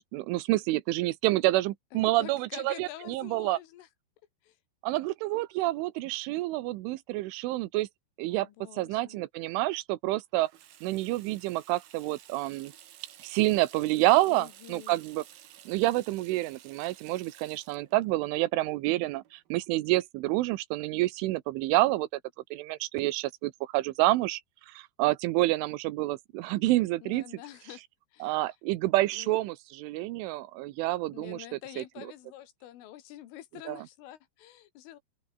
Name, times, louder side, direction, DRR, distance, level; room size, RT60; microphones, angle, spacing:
voice 1, 0.0-3.6 4.8-7.9 8.2-8.5 8.8-10.5 10.8-12.7 13.2-15.2 15.7-22.1 22.5-24.4 24.7-27.2 28.2-31.4 31.8-31.9 33.7-33.8, right 18 dB, 80° right, 3.3 m, -28 dB
voice 2, 1.9-3.9 4.4-4.6 8.3-9.2 14.2-15.0 27.0-27.8 28.1-28.4 29.1-29.3 31.1-35.0, left 13 dB, 85° left, 4.4 m, -47 dB
Water tap faucet / Sink (filling or washing), 10.3-19.7, right 11 dB, 60° right, 3.1 m, -54 dB
open air
omnidirectional pair, 5.6 m